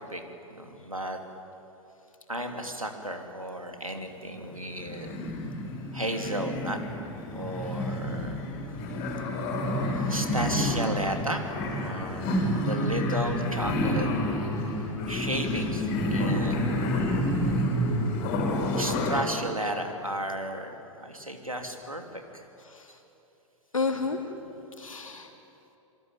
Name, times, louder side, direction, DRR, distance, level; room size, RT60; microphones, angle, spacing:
voice 1, 0.5-1.2 2.3-5.2 5.9-6.8 7.3-8.4 10.1-14.1 15.1-17.0 18.8-22.4, right 1 dB, 90° right, 4 dB, 3.0 m, -34 dB
sound 1, 4.5-19.2, left 1 dB, 35° left, 6.5 m, -29 dB
voice 2, 8.9-9.4 10.0-10.1 17.8-18.2 22.6-23.0 23.7-24.4 24.8-25.3, left 4 dB, 75° left, 4 dB, 3.3 m, -34 dB
27.0 x 23.5 x 9.2 m, 2.9 s
figure-of-eight pair, 100°, 17 cm